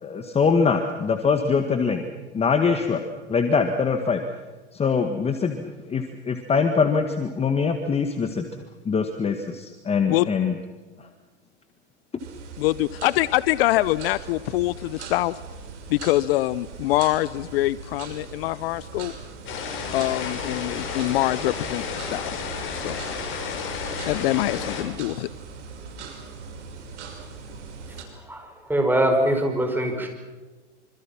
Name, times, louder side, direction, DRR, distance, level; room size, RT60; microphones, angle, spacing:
voice 1, 0.0-2.0 2.3-3.0 3.3-4.2 4.7-8.4 8.8-10.6, left 5 dB, 15° left, 6 dB, 1.8 m, -23 dB
sound 1, 12.2-28.0, right 5 dB, 80° right, 5.9 m, -40 dB
voice 2, 12.6-15.4 15.9-19.1 19.9-22.4 22.7-23.0 24.1-25.3, left 17 dB, 55° left, 18 dB, 0.8 m, -24 dB
sound 2, 19.5-24.8, left 6 dB, 35° left, 6.2 m, -32 dB
voice 3, 28.2-30.1, right 1 dB, 5° right, 4 dB, 5.5 m, -23 dB
26.5 x 26.0 x 5.9 m, 1.3 s
hypercardioid pair, 120°, 35 cm